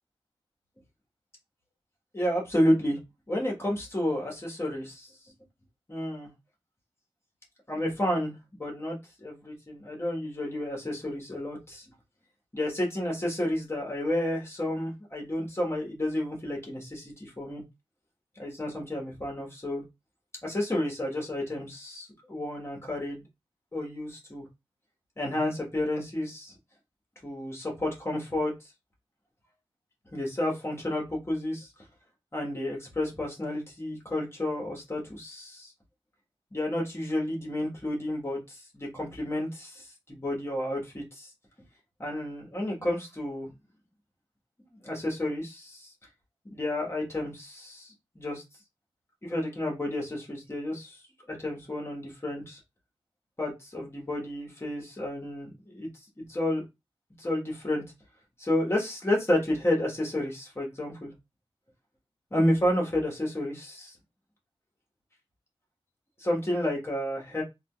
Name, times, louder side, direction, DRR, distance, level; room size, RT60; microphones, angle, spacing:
voice 1, 2.1-3.0 3.3-5.3 5.9-6.3 7.7-11.8 12.5-17.6 18.4-19.8 20.4-23.2 23.7-24.4 25.2-26.5 27.2-28.5 30.1-31.7 32.3-35.7 36.5-41.3 42.0-43.5 44.8-45.9 46.5-48.4 49.2-51.0 51.3-52.6 53.4-55.9 56.2-56.6 57.2-57.8 58.4-61.1 62.3-63.9 66.2-67.4, left 1 dB, 25° left, -2 dB, 1.3 m, -31 dB
3.6 x 2.4 x 2.3 m, 0.23 s
wide cardioid pair, 90°, 10 cm